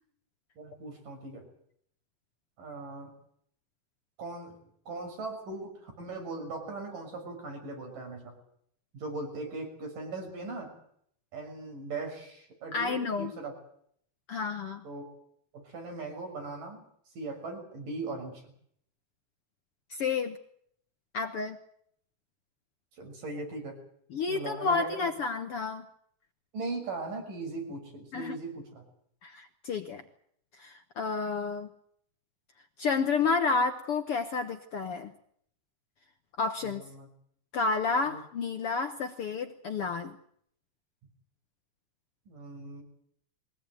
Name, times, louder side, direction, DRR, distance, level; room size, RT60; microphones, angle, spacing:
voice 1, 0.6-1.5 2.6-3.1 4.2-4.6 4.9-8.3 8.9-10.8 11.3-13.6 14.8-15.1 15.5-16.8 17.2-18.5 23.0-23.8 24.3-25.1 26.5-28.8 36.6-37.1 38.1-38.2 42.3-42.8, right 3 dB, 70° right, 3 dB, 7.9 m, -39 dB
voice 2, 12.7-13.3 14.3-14.8 19.9-20.4 21.1-21.6 24.1-25.8 28.1-28.4 29.2-30.0 30.6-31.7 32.8-35.1 36.4-36.8 37.5-40.2, left 4 dB, 55° left, 7 dB, 1.7 m, -30 dB
23.0 x 18.0 x 9.4 m, 0.66 s
omnidirectional pair, 3.9 m